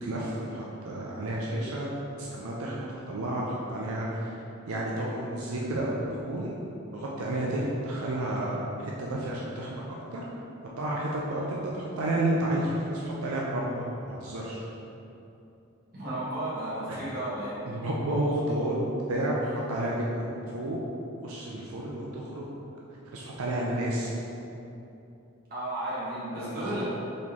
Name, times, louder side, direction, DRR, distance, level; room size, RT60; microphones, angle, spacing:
voice 1, 0.0-1.9 2.2-6.6 6.9-9.8 10.1-10.2 10.8-14.6 16.9-17.0 17.7-19.4 19.7-20.8 21.2-22.6 23.1-24.1 26.3-26.8, right 1 dB, 90° right, -4 dB, 0.5 m, -31 dB
voice 2, 15.9-17.9 25.5-26.8, right 1 dB, 45° right, -10 dB, 1.5 m, -33 dB
4.2 x 3.0 x 3.6 m, 2.8 s
head